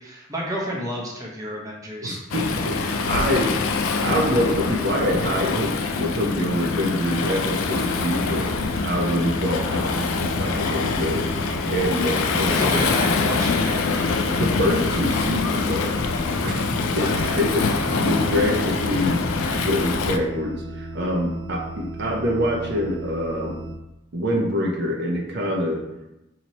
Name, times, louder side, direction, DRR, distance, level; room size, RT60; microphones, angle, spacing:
voice 1, 0.0-2.2 12.5-13.9 17.0-17.4, equal, 15° right, -3 dB, 0.6 m, -31 dB
voice 2, 2.0-3.6 4.0-8.5 8.8-11.3 11.7-12.9 14.3-16.0 16.4-16.6 17.0-17.6 17.9-23.6 24.1-25.8, equal, 55° right, 0 dB, 0.5 m, -25 dB
Waves surf, 2.3-20.2, left 4 dB, 85° left, 0.3 m, -24 dB
sound 1, 7.7-23.8, right 1 dB, 85° right, 0.8 m, -36 dB
sound 2, 13.2-20.2, equal, 5° left, 0.9 m, -42 dB
3.0 x 2.8 x 4.1 m, 0.94 s
head